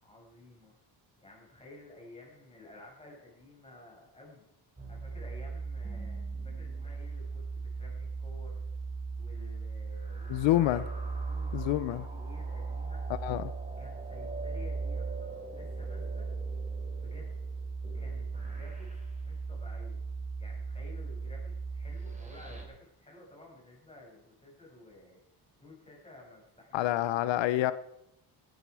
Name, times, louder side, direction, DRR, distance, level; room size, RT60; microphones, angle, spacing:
voice 1, 0.0-0.7 1.2-4.4 4.9-8.6 9.2-13.0 13.8-16.3 17.0-17.4 17.9-20.0 20.4-25.2 25.6-26.9, left 2 dB, 15° left, -2 dB, 7.0 m, -53 dB
sound 1, 4.8-22.6, right 4 dB, 15° right, 3.5 m, -37 dB
voice 2, 10.3-10.8 11.5-12.1 13.2-13.5 26.7-27.7, left 14 dB, 90° left, 14 dB, 0.8 m, -27 dB
18.0 x 12.0 x 4.8 m, 0.82 s
cardioid pair, 130°, 43 cm